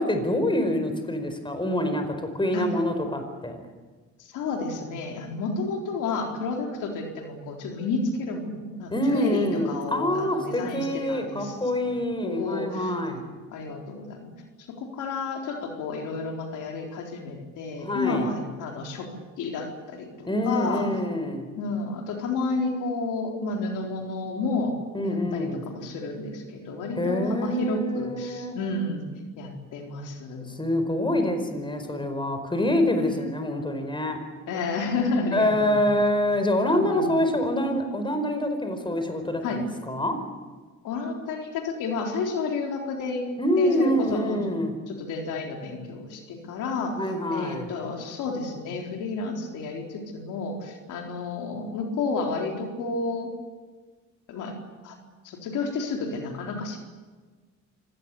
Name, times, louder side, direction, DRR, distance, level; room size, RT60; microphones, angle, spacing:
voice 1, 0.0-3.6 8.9-13.2 17.8-18.3 20.2-21.5 24.9-25.6 26.9-28.6 30.5-34.2 35.3-40.2 43.4-44.7 46.9-47.7, left 1 dB, 15° left, 7 dB, 4.8 m, -26 dB
voice 2, 4.2-11.6 12.2-13.2 13.5-14.3 14.7-19.1 19.4-20.9 21.6-24.7 25.0-29.0 29.4-30.5 34.5-35.8 36.6-37.2 39.4-39.6 40.8-43.3 43.6-44.4 44.9-47.0 47.3-53.3 54.3-54.5 54.8-55.0 55.2-56.8, left 3 dB, 90° left, 2 dB, 4.0 m, -31 dB
25.5 x 18.5 x 8.4 m, 1.4 s
cardioid pair, 90°, 30 cm